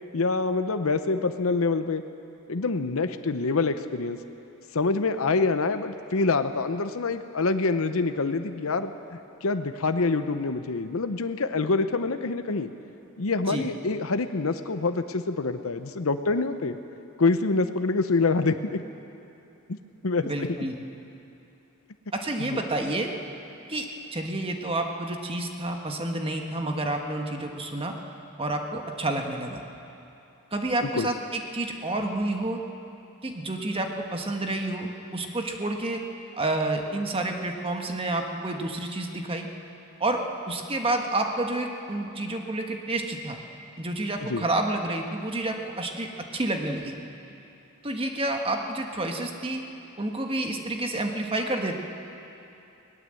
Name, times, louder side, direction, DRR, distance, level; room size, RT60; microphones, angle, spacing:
voice 1, 0.1-2.0 2.5-4.2 4.7-8.9 9.4-12.7 13.2-16.8 17.2-18.8 19.7-19.8 20.0-20.3 22.4-22.6 30.8-31.1 44.3-44.4, left 3 dB, 70° left, 9 dB, 0.8 m, -26 dB
voice 2, 20.2-20.8 22.1-23.1 23.7-23.9 24.1-28.0 28.4-29.6 30.5-31.1 31.5-32.6 33.2-36.0 36.4-39.5 40.0-43.4 43.8-47.0 47.8-49.6 50.0-51.8, right 2 dB, 25° right, 3 dB, 1.5 m, -29 dB
20.5 x 18.5 x 7.8 m, 2.8 s
head